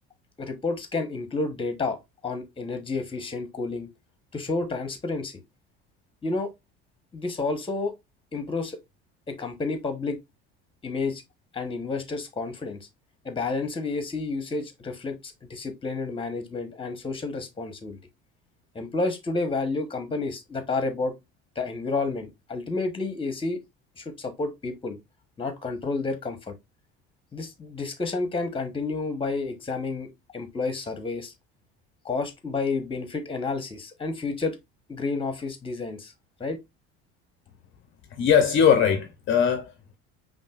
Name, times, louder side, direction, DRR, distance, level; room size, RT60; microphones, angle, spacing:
voice 1, 0.4-3.9 4.3-5.4 6.2-6.5 7.1-7.9 8.3-8.8 9.3-10.2 10.8-11.2 11.5-12.9 13.2-18.0 18.7-21.1 21.5-23.6 24.0-25.0 25.4-26.5 27.3-31.3 32.0-34.6 34.9-36.1 36.4-36.6, left 3 dB, 15° left, 1.0 m, -30 dB
voice 2, 38.1-39.9, left 7 dB, 40° left, 0.7 m, -21 dB
5.3 x 2.7 x 2.4 m
supercardioid pair, 115°, 30 cm